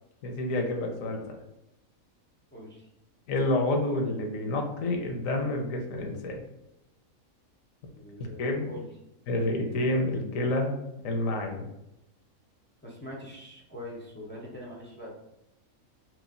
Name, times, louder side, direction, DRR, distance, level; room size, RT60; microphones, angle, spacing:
voice 1, 0.2-1.2 3.3-6.4 8.2-8.7 9.3-10.8 11.0-11.7, left 2 dB, 75° left, 3 dB, 1.1 m, -28 dB
voice 2, 2.5-2.9 8.0-8.9 12.8-15.1, equal, 15° left, -4 dB, 0.4 m, -43 dB
3.1 x 3.1 x 3.7 m, 0.87 s
omnidirectional pair, 1.5 m